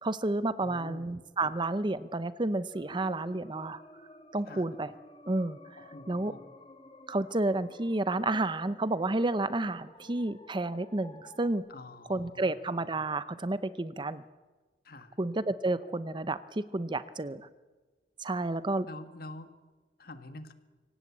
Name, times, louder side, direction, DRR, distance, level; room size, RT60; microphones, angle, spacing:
voice 1, 0.0-3.8 4.3-4.9 5.3-5.6 6.1-6.3 7.1-11.6 12.1-14.2 15.2-16.4 16.7-17.5 18.2-18.9, right 2 dB, 25° right, 14 dB, 0.7 m, -30 dB
voice 2, 0.6-1.1 4.5-4.7 5.8-6.4 11.7-12.6 14.8-15.2 18.8-19.5 20.0-20.5, left 2 dB, 55° left, 9 dB, 1.7 m, -46 dB
sound 1, 2.7-11.5, left 1 dB, 30° left, 2.1 m, -53 dB
25.5 x 17.5 x 8.6 m, 1.3 s
head